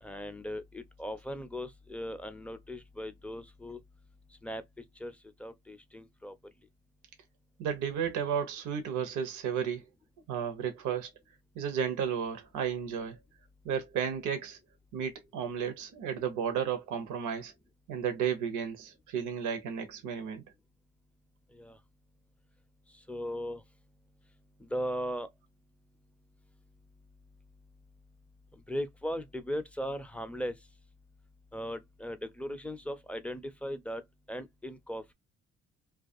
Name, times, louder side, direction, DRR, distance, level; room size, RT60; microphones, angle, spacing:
voice 1, 0.0-3.8 4.4-4.6 5.0-5.1 5.4-6.3 21.5-21.8 23.1-23.6 24.6-25.3 28.7-30.5 31.5-34.0 34.3-35.1, equal, 5° left, 0.4 m, -38 dB
voice 2, 7.6-9.8 10.3-11.1 11.6-13.2 13.6-14.6 14.9-17.5 17.9-20.4, right 7 dB, 85° right, 0.7 m, -33 dB
2.3 x 2.2 x 2.6 m
cardioid pair, 90°, 30 cm